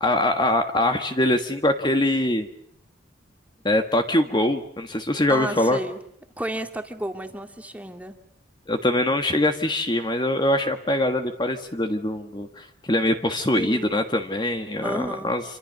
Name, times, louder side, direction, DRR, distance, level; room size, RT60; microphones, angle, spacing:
voice 1, 0.0-2.5 3.6-5.8 8.7-15.4, left 1 dB, 25° left, 6 dB, 1.5 m, -23 dB
voice 2, 5.3-6.0 6.4-8.2 13.5-14.0 14.8-15.3, right 1 dB, 5° right, 5 dB, 2.1 m, -32 dB
27.0 x 26.0 x 6.6 m, 0.71 s
head